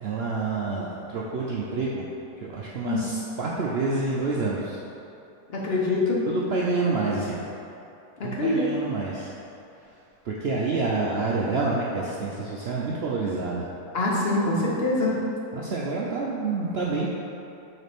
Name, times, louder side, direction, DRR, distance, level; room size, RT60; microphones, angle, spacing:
voice 1, 0.0-2.1 2.4-4.8 6.3-7.4 8.2-9.3 10.2-13.6 15.5-17.1, right 3 dB, 70° right, -4 dB, 0.6 m, -28 dB
voice 2, 5.5-6.2 8.2-8.7 13.9-15.2, left 2 dB, 45° left, -3 dB, 0.9 m, -24 dB
6.5 x 4.1 x 3.4 m, 2.7 s
omnidirectional pair, 1.6 m